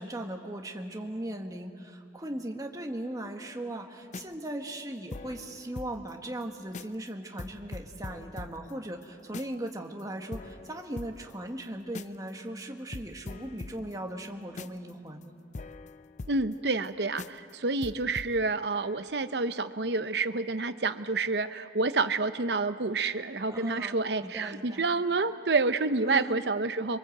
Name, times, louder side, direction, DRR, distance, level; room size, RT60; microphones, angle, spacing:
voice 1, 0.0-15.4 23.5-24.8 26.1-26.4, right 1 dB, 20° right, 3 dB, 1.6 m, -38 dB
sound 1, 4.0-6.1 6.4-6.5 6.7-7.1 7.4-9.7 10.0-10.1 10.3-12.3 12.6-12.7 12.9-16.9 17.2-17.5 17.8-18.3, left 3 dB, 40° left, 0.5 m, -43 dB
voice 2, 16.3-27.0, right 3 dB, 65° right, 11 dB, 0.8 m, -28 dB
27.0 x 23.5 x 7.9 m, 2.3 s
head